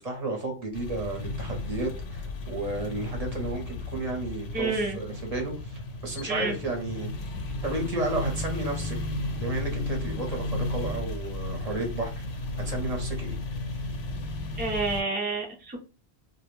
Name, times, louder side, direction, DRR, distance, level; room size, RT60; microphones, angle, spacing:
voice 1, 0.0-7.3 7.6-9.0 9.4-12.2 12.6-13.4, right 2 dB, 45° right, 1 dB, 0.7 m, -33 dB
sound 1, 0.7-15.0, left 2 dB, 85° left, 0.8 m, -34 dB
voice 2, 4.5-5.0 6.3-6.6 14.6-15.8, right 3 dB, 15° right, 0 dB, 0.3 m, -29 dB
2.1 x 2.1 x 3.0 m, 0.34 s
omnidirectional pair, 1.1 m